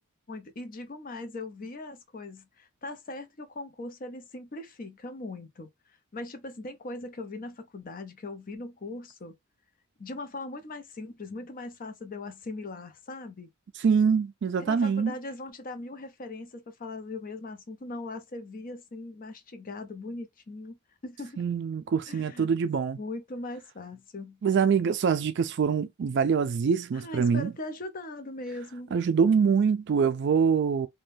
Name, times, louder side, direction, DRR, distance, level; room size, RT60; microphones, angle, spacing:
voice 1, 0.3-5.7 6.1-9.3 10.0-13.5 14.6-20.8 21.0-21.4 22.1-22.5 23.0-24.4 26.9-28.9, left 2 dB, 40° left, 0.6 m, -40 dB
voice 2, 13.8-15.1 21.4-23.0 24.4-27.5 28.9-30.9, right 6 dB, 55° right, 0.3 m, -24 dB
3.4 x 2.2 x 2.6 m
head